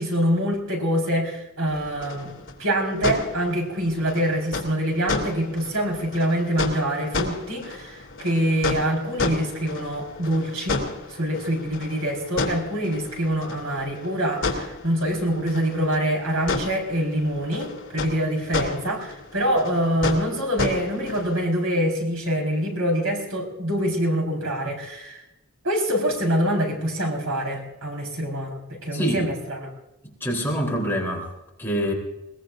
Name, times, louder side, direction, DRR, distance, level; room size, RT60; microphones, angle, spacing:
voice 1, 0.0-2.3 2.6-25.2 25.6-29.7, equal, 80° right, 0 dB, 4.6 m, -25 dB
sound 1, 1.7-21.5, left 3 dB, 60° left, 2.9 m, -32 dB
voice 2, 28.9-29.3 30.0-31.3 31.6-31.9, equal, 10° left, -1 dB, 3.6 m, -26 dB
22.0 x 21.0 x 2.6 m, 0.93 s
head